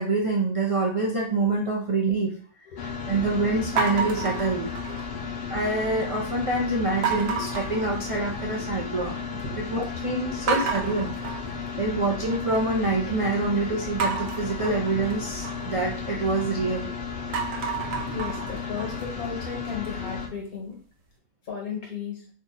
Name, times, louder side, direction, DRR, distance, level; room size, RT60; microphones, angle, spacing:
voice 1, 0.0-2.3 3.1-4.7 5.5-9.4 9.7-11.1 11.8-16.9, right 3 dB, 50° right, -2 dB, 0.3 m, -26 dB
voice 2, 2.7-3.1 5.0-5.3 9.4-9.6 10.2-10.8 18.1-20.8 21.4-22.3, left 6 dB, 80° left, -1 dB, 1.9 m, -36 dB
sound 1, 2.8-20.3, left 5 dB, 55° left, 0.7 m, -34 dB
sound 2, 3.8-5.2 5.6-6.2 7.0-8.6 8.9-9.5 9.8-9.9 10.5-12.6 14.0-16.8 17.2-20.1, right 5 dB, 70° right, 1.1 m, -31 dB
3.7 x 2.4 x 4.0 m, 0.42 s
omnidirectional pair, 1.5 m